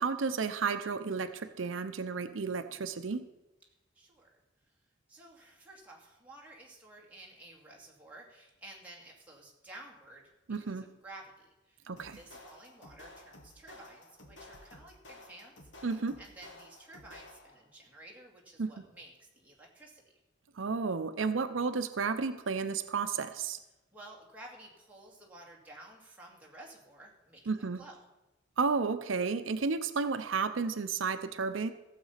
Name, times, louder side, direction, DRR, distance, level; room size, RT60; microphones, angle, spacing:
voice 1, 0.0-3.2 10.5-10.8 11.9-12.2 15.8-16.2 18.6-18.7 20.6-23.6 27.5-27.8 28.6-31.7, right 4 dB, 80° right, 9 dB, 0.6 m, -32 dB
voice 2, 3.9-4.8 5.1-10.3 10.6-11.9 12.1-20.0 23.9-28.0, right 1 dB, 10° right, -3 dB, 2.3 m, -53 dB
sound 1, 12.0-17.7, left 2 dB, 65° left, 1.6 m, -54 dB
15.5 x 7.4 x 5.7 m, 1.0 s
head